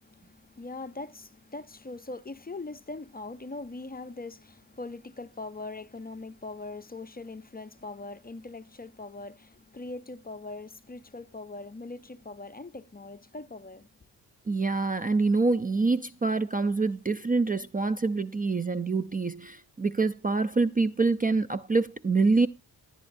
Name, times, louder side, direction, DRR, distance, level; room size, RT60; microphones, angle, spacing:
voice 1, 0.0-13.9, left 3 dB, 25° left, 0.6 m, -41 dB
voice 2, 14.5-22.5, right 3 dB, 20° right, 0.4 m, -26 dB
14.5 x 10.5 x 2.6 m
cardioid pair, 80°, 40 cm